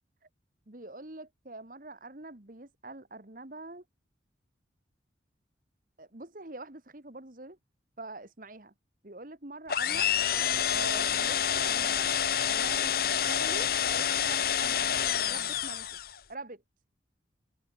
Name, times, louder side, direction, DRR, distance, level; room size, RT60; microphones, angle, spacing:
voice 1, 0.7-3.8 6.0-7.6 8.0-8.7 9.0-10.2 10.7-12.1 12.5-12.9 13.3-16.0 16.3-16.6, right 2 dB, 45° right, 1.9 m, -44 dB
sound 1, 9.7-16.2, left 9 dB, 50° left, 1.0 m, -28 dB
open air
head